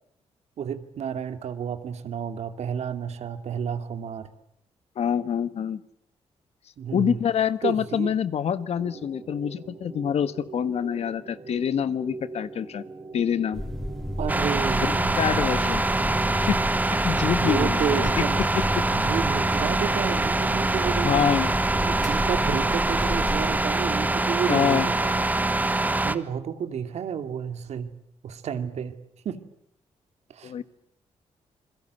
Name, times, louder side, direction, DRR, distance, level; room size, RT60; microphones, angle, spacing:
voice 1, 0.6-4.3 6.8-7.2 7.6-8.1 14.2-15.6 17.2-18.5 18.9-21.3 21.8-25.2 26.0-27.9 28.2-28.9 29.2-29.4 30.3-30.5, right 8 dB, 75° right, 9 dB, 2.5 m, -31 dB
voice 2, 4.9-5.8 6.9-12.8 13.1-13.6 14.8-15.8 16.4-16.6 16.9-18.2 18.5-18.8 21.0-21.5 24.5-24.9 30.4-30.6, left 8 dB, 65° left, 14 dB, 1.4 m, -26 dB
sound 1, 8.8-24.1, right 3 dB, 35° right, 3.0 m, -43 dB
sound 2, 13.5-23.6, equal, 5° left, 4.4 m, -32 dB
sound 3, 14.3-26.2, right 2 dB, 15° right, 1.4 m, -24 dB
28.5 x 22.0 x 8.0 m, 0.69 s
cardioid pair, 105°, 11 cm